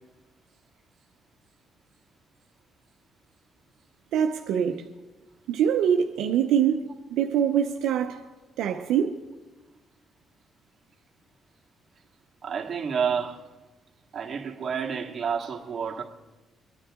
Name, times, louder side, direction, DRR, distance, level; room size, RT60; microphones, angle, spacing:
voice 1, 4.1-4.9 5.5-8.2 8.6-9.2, right 8 dB, 85° right, 0.7 m, -24 dB
voice 2, 12.4-13.4 14.1-16.0, right 6 dB, 45° right, 2.0 m, -29 dB
25.0 x 9.9 x 3.7 m
cardioid pair, 90°, 0 cm